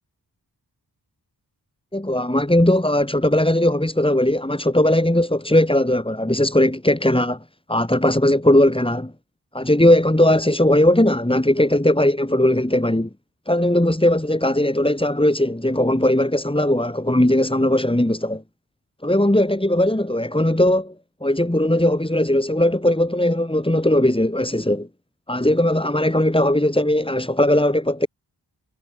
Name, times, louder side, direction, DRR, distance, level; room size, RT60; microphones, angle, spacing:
voice 1, 1.9-7.4 7.7-9.1 9.5-13.1 13.5-18.4 19.0-20.9 21.2-24.9 25.3-28.1, left 1 dB, 15° left, 7.5 m, -18 dB
cardioid pair, 55°, 40 cm